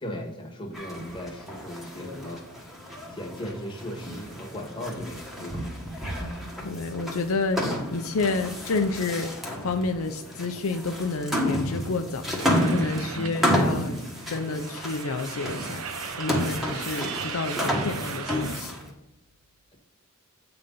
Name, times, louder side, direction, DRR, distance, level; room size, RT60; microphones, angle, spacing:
voice 1, 0.0-2.7 3.1-5.8 13.1-13.3 17.7-17.9, equal, 25° left, 1 dB, 1.5 m, -37 dB
sound 1, 0.7-18.9, equal, ahead, 1.4 m, -31 dB
voice 2, 6.6-14.0 14.3-15.8 16.2-18.7, left 3 dB, 70° left, 6 dB, 0.6 m, -30 dB
sound 2, 12.4-18.6, right 6 dB, 85° right, 0.7 m, -37 dB
8.3 x 3.9 x 5.3 m, 0.90 s
head